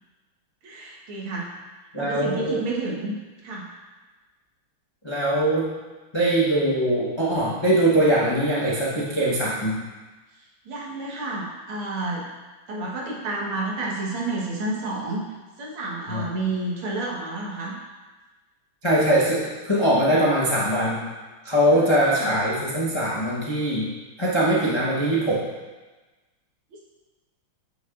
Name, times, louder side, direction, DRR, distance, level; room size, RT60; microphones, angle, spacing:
voice 1, 0.6-1.5 2.0-3.1 3.4-3.7 10.4-12.2 12.7-15.2 15.6-17.7 21.7-22.3, right 2 dB, 85° right, -3 dB, 2.1 m, -30 dB
voice 2, 1.9-2.6 5.0-5.7 6.1-9.7 16.1-16.2 18.8-21.0 21.4-23.8 24.2-25.4, right 1 dB, 40° left, -6 dB, 0.4 m, -22 dB
7.8 x 6.5 x 2.4 m, 1.2 s
omnidirectional pair, 2.2 m